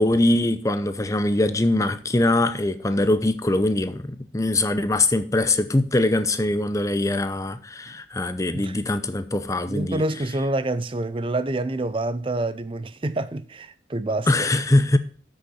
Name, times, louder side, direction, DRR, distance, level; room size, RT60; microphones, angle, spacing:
voice 1, 0.0-10.0 14.3-15.0, left 2 dB, 15° left, 0.6 m, -22 dB
voice 2, 9.7-14.5, right 2 dB, 30° right, 0.5 m, -27 dB
7.9 x 6.4 x 6.1 m
head